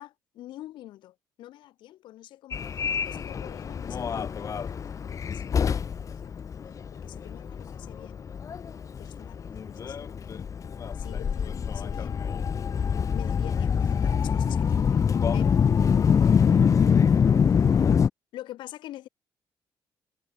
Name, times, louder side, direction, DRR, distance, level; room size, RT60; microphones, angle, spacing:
voice 1, 0.0-6.4 6.9-8.2 9.0-10.3 10.9-12.2 13.1-16.3 17.6-17.7 18.3-19.1, left 14 dB, 85° left, 3.1 m, -46 dB
Subway metro underground, 2.5-18.1, left 7 dB, 45° left, 0.8 m, -25 dB
cardioid pair, 85°, 8 cm